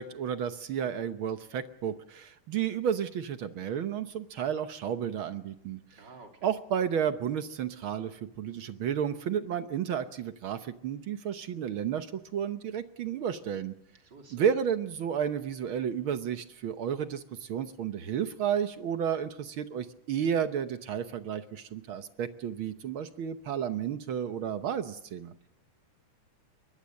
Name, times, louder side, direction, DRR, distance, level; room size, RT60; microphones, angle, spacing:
voice 1, 0.0-6.0 6.4-13.7 14.3-25.3, right 8 dB, 65° right, 10 dB, 1.3 m, -32 dB
voice 2, 6.0-6.5 14.0-14.4 25.4-25.5, right 3 dB, 35° right, 4 dB, 3.5 m, -51 dB
23.5 x 20.0 x 6.5 m, 0.76 s
omnidirectional pair, 3.5 m